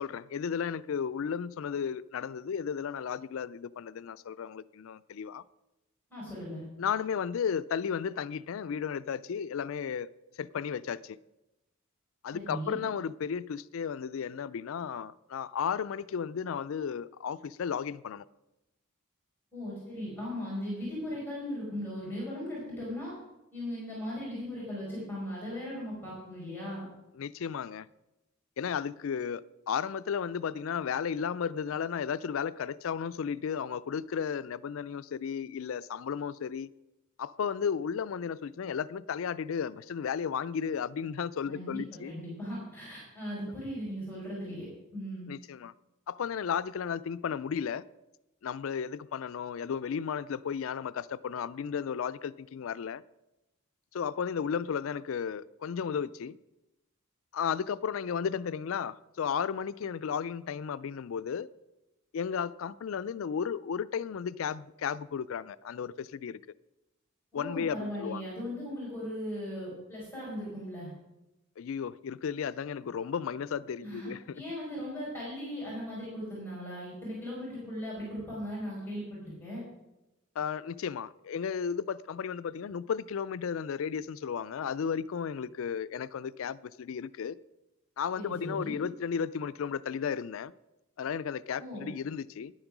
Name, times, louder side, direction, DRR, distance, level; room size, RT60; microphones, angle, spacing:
voice 1, 0.0-5.4 6.8-10.1 10.4-11.2 12.2-18.2 27.1-27.9 28.6-36.7 37.2-42.1 45.3-45.7 46.1-47.8 48.4-53.0 53.9-56.4 57.3-61.5 62.1-66.4 67.3-68.2 71.6-74.4 80.4-87.4 88.0-90.5 91.0-92.5, left 7 dB, 70° left, 0.4 m, -34 dB
voice 2, 6.1-6.6 12.3-12.8 19.5-23.1 23.5-26.9 41.4-45.3 67.3-70.9 73.8-79.6 88.2-88.8 91.6-91.9, equal, 10° left, 4.8 m, -38 dB
10.5 x 8.9 x 6.0 m
head